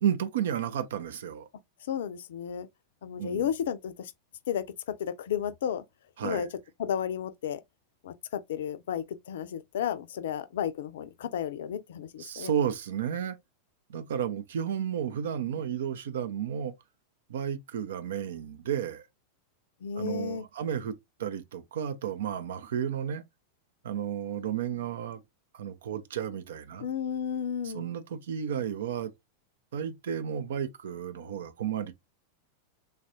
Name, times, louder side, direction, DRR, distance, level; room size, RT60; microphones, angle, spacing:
voice 1, 0.0-1.5 3.2-3.5 6.2-6.5 12.2-13.4 13.9-16.7 17.3-19.1 19.9-23.2 23.8-25.2 25.5-26.9 27.6-29.1 29.7-31.9, right 9 dB, 60° right, 0.4 m, -32 dB
voice 2, 1.9-2.7 3.0-4.1 4.5-5.8 6.2-6.5 6.8-7.6 8.0-12.5 19.8-20.5 26.8-27.9, left 8 dB, 60° left, 0.4 m, -33 dB
3.4 x 2.4 x 2.6 m
figure-of-eight pair, 90°, 0 cm